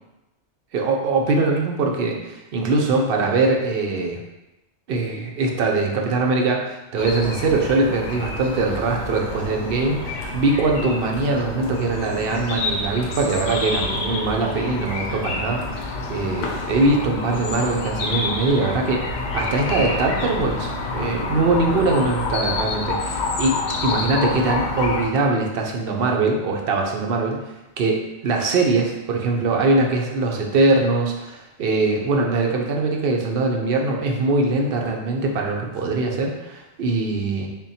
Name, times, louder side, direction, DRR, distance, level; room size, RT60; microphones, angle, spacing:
voice 1, 0.7-4.2 4.9-19.0 19.3-27.5 27.8-37.5, right 3 dB, 60° right, 1 dB, 0.7 m, -22 dB
sound 1, 7.0-25.1, left 3 dB, 75° left, 0.9 m, -28 dB
3.6 x 2.2 x 4.0 m, 0.98 s
omnidirectional pair, 1.2 m